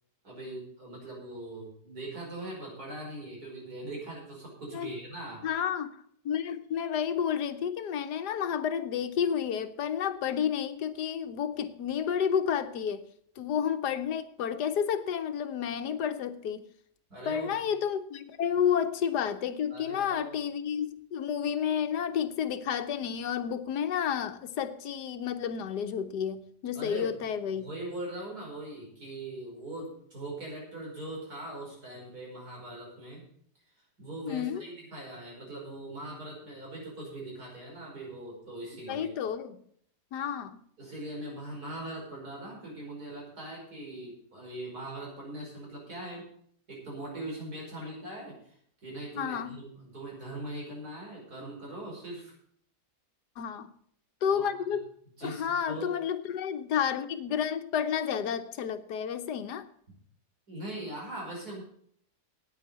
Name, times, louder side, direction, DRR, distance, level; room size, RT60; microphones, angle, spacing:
voice 1, 0.2-5.5 17.1-17.6 19.7-20.4 26.7-27.1 27.6-33.3 34.0-39.1 40.8-46.3 46.7-48.5 48.8-52.3 54.3-54.5 55.2-55.9 60.5-61.6, right 1 dB, 65° right, -2 dB, 5.8 m, -41 dB
voice 2, 5.4-6.0 6.2-13.1 13.4-16.7 17.3-27.6 34.3-34.6 38.9-39.6 40.1-40.6 49.1-49.6 53.4-53.7 54.2-54.8 55.2-59.7, left 8 dB, 80° left, 10 dB, 1.5 m, -31 dB
9.4 x 9.2 x 8.0 m, 0.64 s
omnidirectional pair, 1.7 m